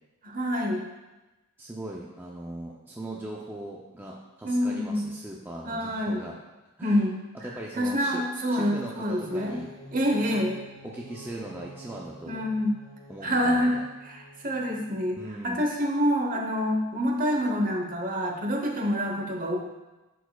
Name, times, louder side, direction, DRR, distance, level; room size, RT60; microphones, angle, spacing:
voice 1, 0.2-0.8 4.4-5.1 5.6-6.2 6.8-7.2 7.4-7.5 7.7-9.6 9.9-10.6 12.3-12.7 13.2-13.7 14.0-15.2 15.4-19.6, equal, 40° right, 1 dB, 0.9 m, -26 dB
voice 2, 1.6-6.4 6.8-7.0 7.4-9.7 10.8-12.4 13.1-13.8 15.1-15.6, right 1 dB, 10° right, -3 dB, 0.4 m, -39 dB
sound 1, 9.2-15.1, right 1 dB, 15° left, 1.7 m, -48 dB
10.0 x 4.6 x 2.3 m, 1.1 s
head